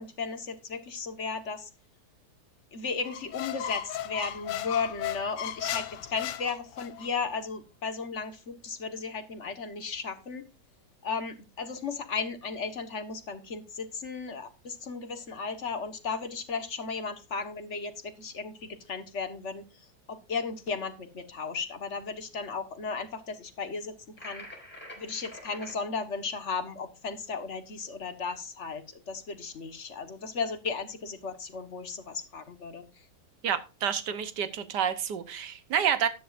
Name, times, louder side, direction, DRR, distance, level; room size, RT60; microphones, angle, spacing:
voice 1, 0.0-1.7 2.7-10.4 11.0-19.7 20.1-24.5 25.0-32.8, left 5 dB, 45° left, 1.7 m, -35 dB
Squeak, 3.0-7.1, left 11 dB, 85° left, 1.4 m, -36 dB
sound 1, 24.2-25.8, left 1 dB, 5° left, 5.8 m, -45 dB
voice 2, 33.4-36.1, right 8 dB, 80° right, 1.7 m, -29 dB
13.0 x 10.5 x 2.6 m
omnidirectional pair, 1.8 m